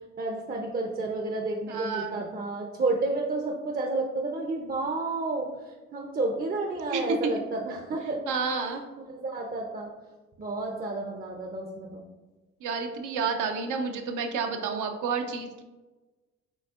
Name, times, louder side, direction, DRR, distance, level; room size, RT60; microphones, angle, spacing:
voice 1, 0.2-5.5 5.9-8.3 8.6-8.8 9.2-9.9 10.4-12.0, right 2 dB, 30° right, 1 dB, 0.5 m, -31 dB
voice 2, 1.7-2.2 6.9-7.2 8.3-8.8 12.6-15.6, right 5 dB, 85° right, 5 dB, 0.6 m, -30 dB
5.2 x 3.5 x 2.4 m, 1.2 s
cardioid pair, 90°, 30 cm